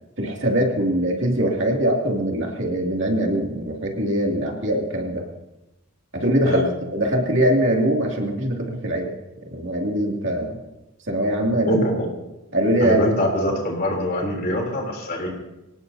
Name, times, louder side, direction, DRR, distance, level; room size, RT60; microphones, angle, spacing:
voice 1, 0.2-5.3 6.1-6.6 6.9-9.1 9.5-10.6 11.1-11.8 12.5-13.0, right 1 dB, 55° right, 0 dB, 2.6 m, -22 dB
voice 2, 11.7-12.1 12.8-15.3, left 1 dB, 40° left, 0 dB, 3.5 m, -24 dB
24.5 x 18.5 x 2.8 m, 0.96 s
head